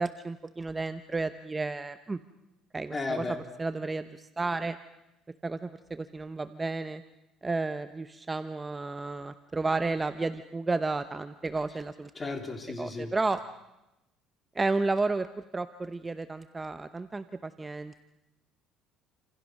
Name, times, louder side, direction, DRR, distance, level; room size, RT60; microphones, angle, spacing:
voice 1, 0.0-2.2 2.7-4.8 5.4-7.0 7.4-12.3 12.8-13.4 14.5-15.3 15.5-18.0, right 3 dB, 15° right, 10 dB, 0.9 m, -32 dB
voice 2, 2.9-3.4 12.2-13.1, left 3 dB, 20° left, 5 dB, 3.9 m, -34 dB
29.0 x 27.0 x 6.5 m, 0.95 s
cardioid pair, 130°, 0 cm